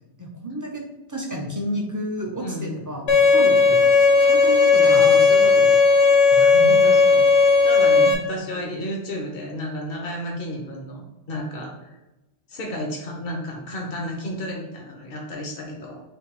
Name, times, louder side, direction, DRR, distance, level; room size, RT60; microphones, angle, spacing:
voice 1, 0.2-0.8 1.1-3.9 4.2-5.1 5.4-5.5 8.0-8.1, equal, 20° right, -1 dB, 0.6 m, -31 dB
voice 2, 2.4-2.7 4.9-5.8 6.3-7.2 7.6-11.9 12.5-16.0, equal, 60° left, 0 dB, 1.2 m, -32 dB
Bowed string instrument, 3.1-8.1, left 4 dB, 85° left, 1.3 m, -15 dB
3.4 x 3.2 x 4.8 m, 1.0 s
omnidirectional pair, 1.1 m